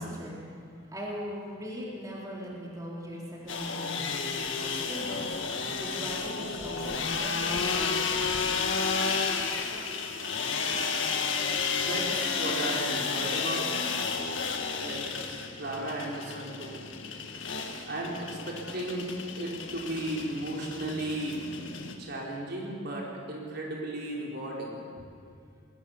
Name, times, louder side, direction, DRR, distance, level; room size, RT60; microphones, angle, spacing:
voice 1, 0.0-8.8, equal, 20° right, -4 dB, 3.8 m, -40 dB
sound 1, 3.5-21.9, left 5 dB, 70° left, 1.9 m, -32 dB
voice 2, 11.6-13.8 14.8-15.0 15.6-16.8 17.9-19.1 19.4-21.5 22.0-24.8, right 1 dB, 60° right, -2 dB, 4.3 m, -35 dB
21.0 x 19.0 x 7.2 m, 2.3 s
head